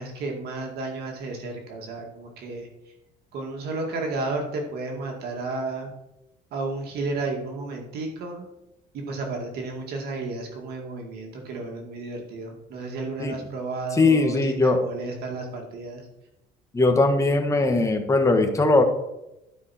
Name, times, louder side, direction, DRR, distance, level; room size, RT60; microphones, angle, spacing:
voice 1, 0.0-2.7 3.3-5.9 6.5-8.5 8.9-16.0, right 3 dB, 70° right, 1 dB, 2.3 m, -32 dB
voice 2, 14.0-14.8 16.7-18.8, left 3 dB, 20° left, 4 dB, 1.5 m, -20 dB
12.0 x 6.0 x 4.4 m, 0.91 s
cardioid pair, 110°, 17 cm